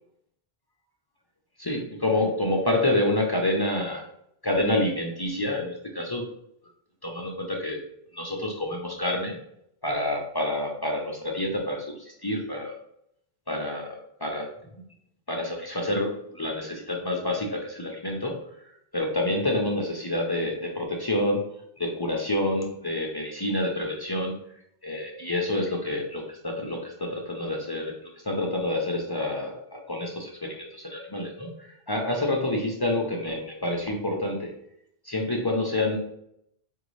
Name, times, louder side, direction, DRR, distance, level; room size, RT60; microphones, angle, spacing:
voice 1, 1.6-4.1 4.4-6.2 7.0-7.8 8.1-9.4 9.8-12.8 13.5-14.5 15.3-18.4 18.9-21.5 21.8-24.3 24.8-34.5 35.0-36.0, left 1 dB, 35° left, 0 dB, 0.4 m, -28 dB
4.3 x 2.6 x 3.0 m, 0.74 s
omnidirectional pair, 1.1 m